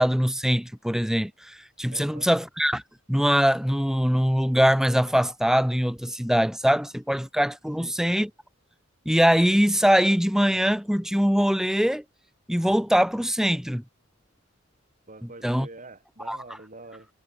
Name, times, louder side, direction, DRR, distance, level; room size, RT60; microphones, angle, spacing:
voice 1, 0.0-2.8 3.1-8.3 9.0-12.0 12.5-13.8 15.4-15.7 16.3-16.4, equal, ahead, 1.8 m, -22 dB
voice 2, 1.9-2.3 7.8-7.9 15.1-17.1, right 2 dB, 40° right, 7.9 m, -45 dB
head